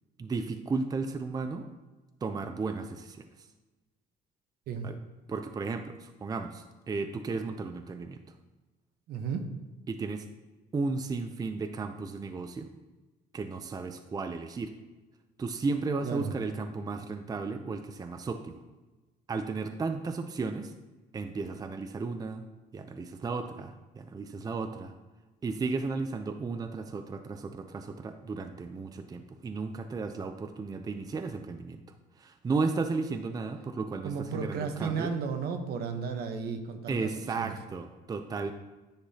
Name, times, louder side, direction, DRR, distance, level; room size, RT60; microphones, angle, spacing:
voice 1, 0.2-1.7 2.2-3.2 4.8-5.0 5.3-8.2 9.9-10.2 10.7-12.7 13.3-14.7 15.4-18.6 19.3-20.7 21.1-22.4 22.7-24.9 25.4-31.8 32.2-35.1 36.9-38.5, right 4 dB, 20° right, 8 dB, 0.5 m, -34 dB
voice 2, 9.1-9.4 16.0-16.4 34.0-37.1 37.4-37.5, right 5 dB, 70° right, 6 dB, 1.0 m, -34 dB
10.0 x 5.9 x 2.8 m, 1.2 s
cardioid pair, 110°, 17 cm